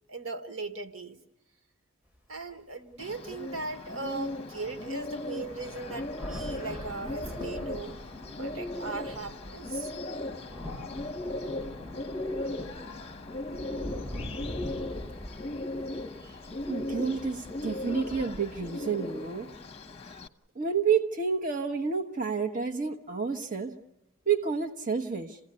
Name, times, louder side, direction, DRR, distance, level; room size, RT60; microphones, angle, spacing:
voice 1, 0.1-1.2 2.3-7.9 8.4-10.2 12.5-13.0 13.7-14.3, right 3 dB, 85° right, 1.4 m, -39 dB
sound 1, 2.2-2.3 2.9-3.0 4.3-4.4 4.7-18.7, left 1 dB, 5° right, 2.1 m, -43 dB
Bird, 3.0-20.3, left 2 dB, 30° left, 0.9 m, -38 dB
voice 2, 16.7-19.5 20.5-23.8 24.3-25.4, right 5 dB, 40° right, 1.1 m, -29 dB
28.0 x 16.5 x 9.7 m
head